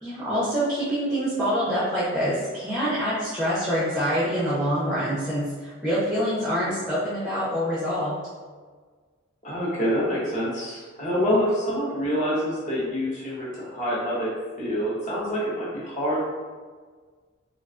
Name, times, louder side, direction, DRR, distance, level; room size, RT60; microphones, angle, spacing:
voice 1, 0.0-8.2, equal, 5° right, -10 dB, 0.4 m, -26 dB
voice 2, 9.4-16.2, equal, 35° left, -6 dB, 0.7 m, -26 dB
2.3 x 2.2 x 2.4 m, 1.5 s
head